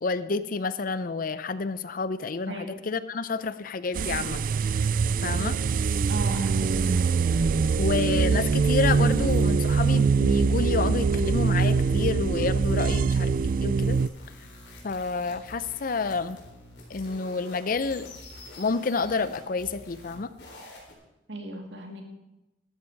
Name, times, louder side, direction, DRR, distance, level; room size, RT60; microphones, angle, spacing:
voice 1, 0.0-4.4 5.2-5.6 7.8-13.3 13.6-14.0 14.8-16.4 16.9-18.1 18.6-20.3, left 4 dB, 50° left, 14 dB, 0.6 m, -29 dB
voice 2, 2.5-2.8 6.1-7.0 21.3-22.0, right 1 dB, 75° right, 3 dB, 2.3 m, -36 dB
sound 1, 3.9-14.1, right 5 dB, 50° right, 0.3 m, -23 dB
sound 2, 13.8-20.9, left 1 dB, 75° left, 3.9 m, -47 dB
13.0 x 13.0 x 4.7 m, 0.97 s
head